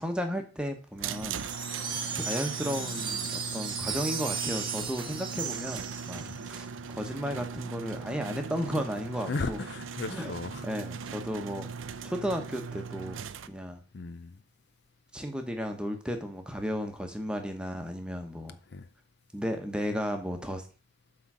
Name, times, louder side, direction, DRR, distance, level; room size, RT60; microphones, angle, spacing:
voice 1, 0.0-1.4 1.8-9.6 10.1-10.3 10.6-11.7 12.0-13.2 13.5-13.8 15.1-18.6 19.3-20.6, equal, 5° right, 1.1 m, -34 dB
sound 1, 1.0-13.5, right 6 dB, 80° right, 0.5 m, -39 dB
Wind chime, 1.1-6.5, right 5 dB, 25° right, 1.0 m, -35 dB
voice 2, 9.3-10.7 13.9-14.4 18.7-18.9, left 3 dB, 55° left, 0.5 m, -36 dB
8.0 x 3.8 x 6.2 m
head